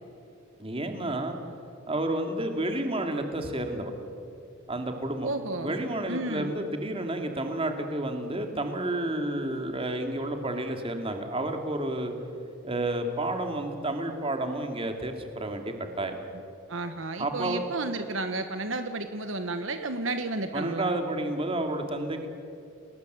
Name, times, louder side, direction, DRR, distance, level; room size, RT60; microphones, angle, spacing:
voice 1, 0.6-1.4 1.9-3.9 4.7-5.3 5.6-12.1 12.6-16.2 17.2-17.6 20.5-22.3, right 1 dB, 25° right, 5 dB, 2.6 m, -30 dB
voice 2, 5.2-5.7 6.1-6.5 16.7-21.0, right 2 dB, 65° right, 8 dB, 1.3 m, -32 dB
29.5 x 20.5 x 8.1 m, 2.5 s
head